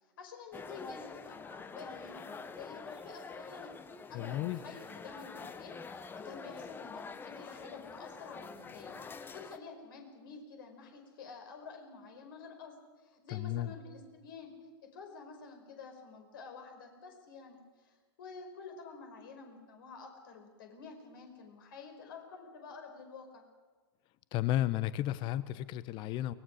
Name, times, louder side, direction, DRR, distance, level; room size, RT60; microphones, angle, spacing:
voice 1, 0.2-3.7 4.1-14.5 14.8-23.4, left 5 dB, 60° left, 4 dB, 4.9 m, -50 dB
sound 1, 0.5-9.6, left 4 dB, 15° left, 1.1 m, -46 dB
voice 2, 4.1-4.6 13.3-13.7 24.3-26.3, left 13 dB, 40° left, 17 dB, 0.9 m, -33 dB
23.5 x 19.5 x 6.4 m, 1.4 s
figure-of-eight pair, 95°, 13 cm